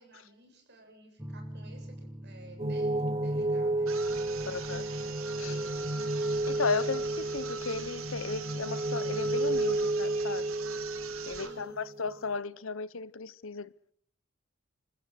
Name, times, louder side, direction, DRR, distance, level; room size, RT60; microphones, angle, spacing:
voice 1, 0.0-3.9 4.4-4.6 4.9-5.9 11.3-11.8, right 2 dB, 50° right, 7.6 m, -53 dB
sound 1, 1.2-8.9, equal, 10° right, 1.4 m, -48 dB
sound 2, 2.6-12.3, right 2 dB, 30° right, 1.0 m, -32 dB
sound 3, 3.8-11.6, right 7 dB, 75° right, 2.9 m, -44 dB
voice 2, 4.5-4.8 5.4-5.6 6.5-10.5 11.3-13.9, left 4 dB, 65° left, 0.9 m, -35 dB
28.5 x 14.5 x 8.1 m
head